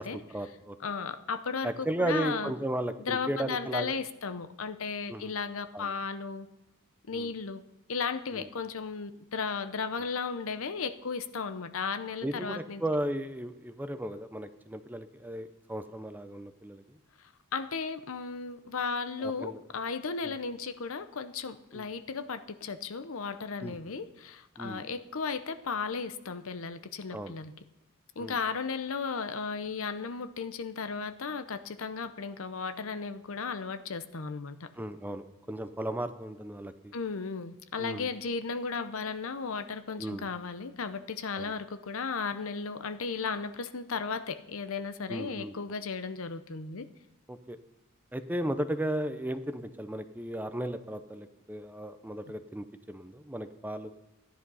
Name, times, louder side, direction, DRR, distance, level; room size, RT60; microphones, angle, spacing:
voice 1, 0.0-0.8 1.6-3.9 5.1-5.3 5.7-5.9 7.1-7.3 8.3-8.5 12.2-17.0 19.2-19.6 20.2-20.4 21.7-21.9 23.6-23.8 24.6-24.8 27.1-27.3 28.2-28.4 34.8-36.9 37.8-38.1 40.0-40.3 41.4-41.5 45.1-45.5 47.3-47.6 48.1-53.9, right 1 dB, 10° right, 10 dB, 0.6 m, -35 dB
voice 2, 0.8-2.5 3.0-6.5 7.1-7.6 7.9-12.8 17.5-27.5 28.2-34.7 36.9-46.9, left 5 dB, 70° left, 11 dB, 0.7 m, -35 dB
14.0 x 10.5 x 5.5 m, 0.98 s
head